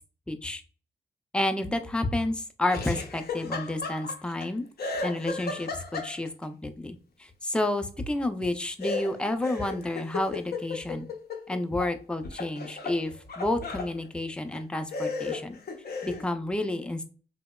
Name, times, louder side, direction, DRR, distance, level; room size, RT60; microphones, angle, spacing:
voice 1, 0.3-0.6 1.3-4.7 5.0-11.1 11.5-15.6 16.0-17.1, left 1 dB, 5° left, 8 dB, 0.4 m, -30 dB
Laughter, 2.7-4.5 4.8-6.4 8.8-11.9 12.3-13.9 14.5-14.6 14.9-16.3, left 4 dB, 65° left, 0.5 m, -35 dB
2.8 x 2.0 x 2.2 m, 0.36 s
cardioid pair, 50°, 17 cm